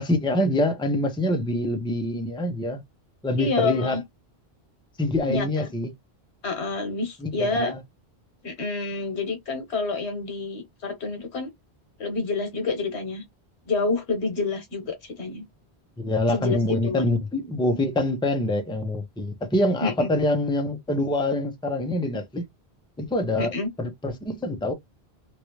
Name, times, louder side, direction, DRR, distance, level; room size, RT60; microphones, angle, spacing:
voice 1, 0.0-2.8 3.2-4.0 5.0-5.9 7.2-7.8 16.0-22.4 23.0-23.5 23.8-24.7, left 1 dB, 5° left, 0.6 m, -25 dB
voice 2, 3.4-4.0 5.3-5.7 6.4-7.7 8.4-11.5 12.0-13.2 13.6-15.4 16.3-17.1 19.8-20.1 23.4-23.7, left 3 dB, 85° left, 1.4 m, -28 dB
3.1 x 2.5 x 3.0 m
omnidirectional pair, 1.1 m